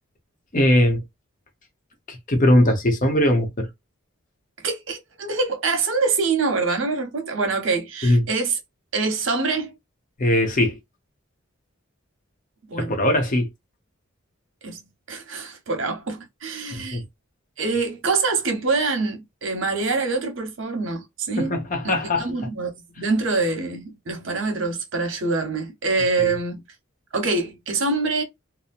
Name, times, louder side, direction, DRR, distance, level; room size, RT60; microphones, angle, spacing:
voice 1, 0.5-1.0 2.1-3.7 8.0-8.3 10.2-10.8 12.8-13.5 16.7-17.0 21.4-22.3 26.2-26.3, left 1 dB, 40° left, 0.7 m, -20 dB
voice 2, 4.6-8.6 8.9-9.7 12.7-13.0 14.6-14.8 15.1-17.0 17.6-21.5 21.8-26.6 27.1-28.2, right 3 dB, 70° right, 0.9 m, -25 dB
2.8 x 2.0 x 2.4 m
head